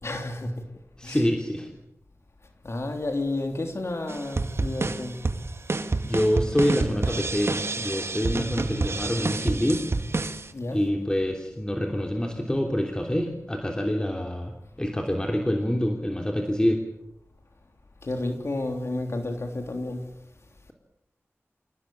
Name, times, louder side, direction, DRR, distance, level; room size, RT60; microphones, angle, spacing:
voice 1, 0.0-0.5 1.0-1.3 2.6-5.2 10.5-10.8 18.0-20.0, left 2 dB, 60° left, 3.2 m, -31 dB
voice 2, 1.0-1.7 6.0-9.8 10.7-16.8, equal, 15° left, 3.2 m, -26 dB
sound 1, 4.1-10.5, right 3 dB, 60° right, 1.8 m, -28 dB
27.0 x 17.5 x 8.8 m
wide cardioid pair, 65°, 5 cm